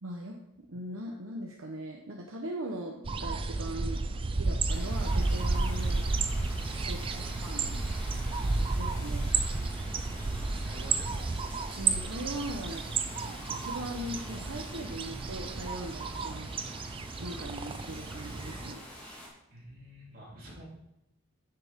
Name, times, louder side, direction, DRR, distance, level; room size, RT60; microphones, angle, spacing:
voice 1, 0.0-4.0 4.4-6.1 6.8-7.8 8.7-9.3 11.8-12.8 13.3-16.5 17.2-18.9, right 1 dB, 70° right, 0 dB, 0.9 m, -40 dB
sound 1, 3.0-18.7, right 3 dB, 25° right, 0.3 m, -32 dB
sound 2, 4.7-19.3, left 1 dB, 10° left, 2.0 m, -46 dB
voice 2, 6.9-7.5 10.2-10.4 10.7-11.7 19.5-20.6, right 1 dB, 40° right, -6 dB, 3.5 m, -49 dB
9.7 x 6.8 x 3.6 m, 0.87 s
head